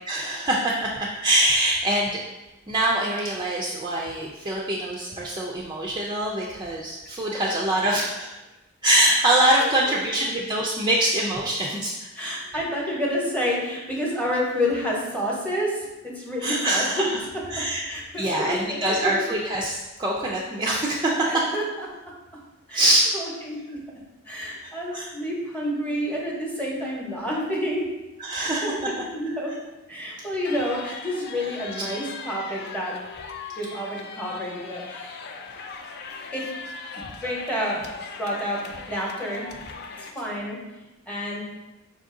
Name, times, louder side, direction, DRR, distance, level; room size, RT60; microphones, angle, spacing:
voice 1, 0.1-2.2 2.7-8.4 8.8-12.4 16.4-17.0 17.5-17.8 18.2-21.1 22.7-23.1 24.9-25.1 28.2-29.0 36.1-36.2, right 1 dB, 20° right, -3 dB, 0.4 m, -24 dB
voice 2, 9.6-10.0 12.1-17.0 17.9-19.3 21.2-21.9 22.7-23.8 24.2-27.8 28.3-29.5 29.9-32.9 33.6-35.2 36.3-36.4 37.0-37.9 38.2-39.5 40.0-40.6 41.1-41.4, equal, 5° left, -3 dB, 0.9 m, -29 dB
sound 1, 30.4-40.1, left 5 dB, 50° left, 0.4 m, -39 dB
5.1 x 2.6 x 3.6 m, 1.0 s
head